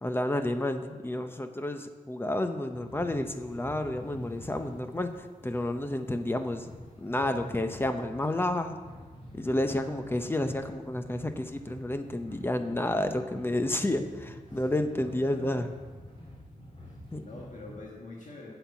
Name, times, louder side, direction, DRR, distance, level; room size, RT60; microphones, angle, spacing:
voice 1, 0.0-8.8 9.3-15.7 17.1-17.2, left 1 dB, 15° left, 7 dB, 0.7 m, -30 dB
sound 1, 2.7-17.7, equal, 40° left, 3.5 m, -48 dB
voice 2, 14.9-15.6 16.8-18.5, left 2 dB, 60° left, -3 dB, 1.5 m, -46 dB
8.5 x 7.9 x 7.0 m, 1.4 s
wide cardioid pair, 150°, 15 cm